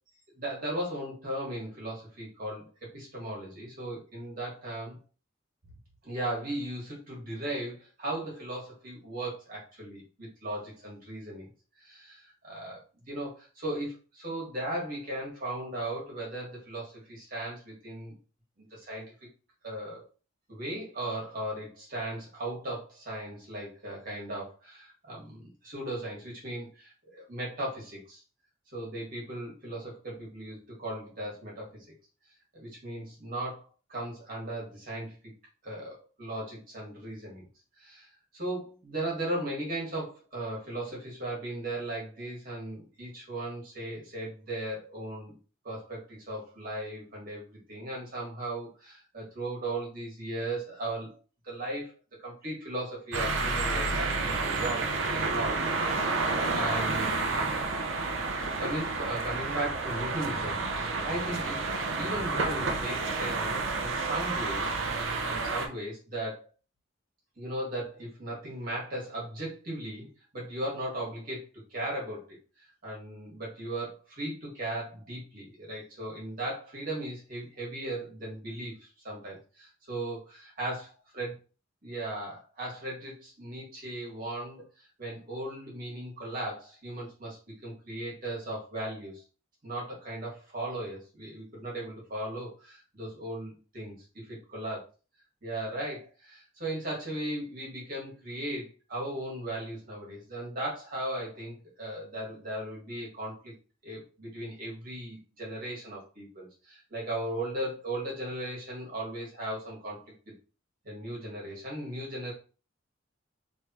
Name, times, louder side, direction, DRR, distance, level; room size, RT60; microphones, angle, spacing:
voice 1, 0.4-5.0 6.0-11.5 11.8-18.1 18.6-19.1 19.6-20.0 20.5-28.2 28.7-31.9 32.5-35.2 35.6-37.4 37.8-45.3 45.6-51.1 51.4-51.9 52.2-56.1 56.5-57.3 58.6-61.6 61.9-66.5 67.4-71.5 71.7-72.2 72.6-80.9 81.1-81.3 81.8-89.2 89.6-94.3 94.5-94.8 95.4-103.5 103.8-110.0 110.8-112.3, right 1 dB, 50° right, -4 dB, 1.9 m, -37 dB
sound 1, 53.1-65.7, right 3 dB, 80° right, 0.7 m, -30 dB
3.4 x 3.2 x 2.9 m, 0.36 s
head